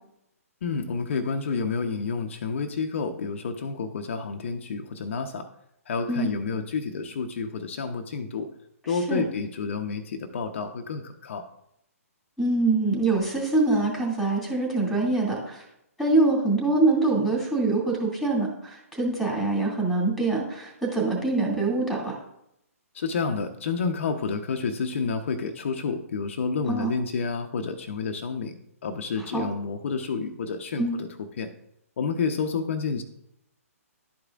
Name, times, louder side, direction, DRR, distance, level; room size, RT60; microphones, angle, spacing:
voice 1, 0.6-5.5 5.9-8.5 8.9-11.4 22.9-31.1 31.4-31.5 32.0-33.0, left 5 dB, 55° left, 5 dB, 0.7 m, -29 dB
voice 2, 8.9-9.2 12.4-15.6 16.0-22.2 26.7-26.9 29.3-29.5 30.8-31.0, right 2 dB, ahead, -1 dB, 2.3 m, -24 dB
11.5 x 4.8 x 2.4 m, 0.78 s
figure-of-eight pair, 130°, 8 cm